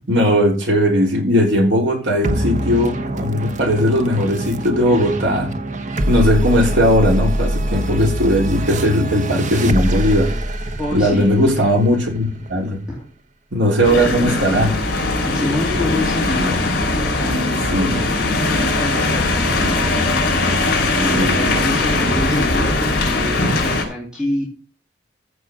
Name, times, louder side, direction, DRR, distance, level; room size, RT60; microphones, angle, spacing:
voice 1, 0.1-5.5 6.1-10.3 10.9-12.8 13.5-14.8 17.7-17.9 21.2-21.4, equal, 65° right, 1 dB, 3.6 m, -17 dB
sound 1, 2.2-13.0, right 1 dB, 40° right, 1.0 m, -24 dB
voice 2, 10.8-11.3 12.9-13.0 15.2-16.6 17.1-20.1 21.0-24.4, left 1 dB, 5° right, -4 dB, 2.7 m, -27 dB
sound 2, 13.8-23.8, left 2 dB, 55° left, 5.1 m, -19 dB
14.5 x 5.4 x 6.3 m, 0.37 s
head